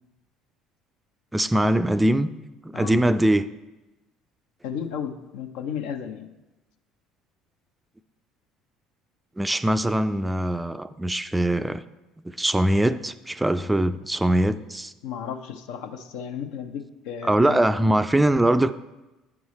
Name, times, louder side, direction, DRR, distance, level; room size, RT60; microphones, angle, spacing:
voice 1, 1.3-2.3 2.6-3.5 9.4-11.8 12.2-14.9 17.2-18.7, right 1 dB, 10° right, 12 dB, 0.3 m, -22 dB
voice 2, 4.6-6.3 15.0-17.9, left 8 dB, 70° left, 8 dB, 0.6 m, -34 dB
9.5 x 4.7 x 4.2 m, 1.0 s
hypercardioid pair, 60°, 0 cm